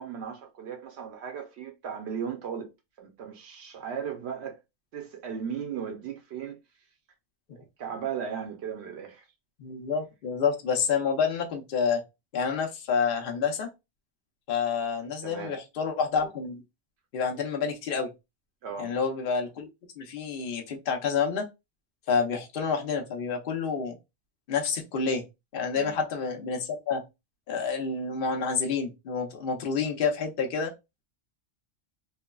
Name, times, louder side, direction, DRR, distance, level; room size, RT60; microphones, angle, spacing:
voice 1, 0.0-2.7 3.0-4.6 4.9-6.6 7.6-9.3 15.2-15.5 18.6-18.9 25.7-26.0, right 7 dB, 75° right, 0.8 m, -36 dB
voice 2, 9.6-12.0 12.3-13.7 14.5-16.6 17.1-18.1 18.8-19.7 20.0-21.5 22.1-24.0 24.5-25.2 25.5-27.0 27.5-30.7, left 5 dB, 55° left, 0.8 m, -28 dB
3.2 x 2.0 x 2.2 m
omnidirectional pair, 1.2 m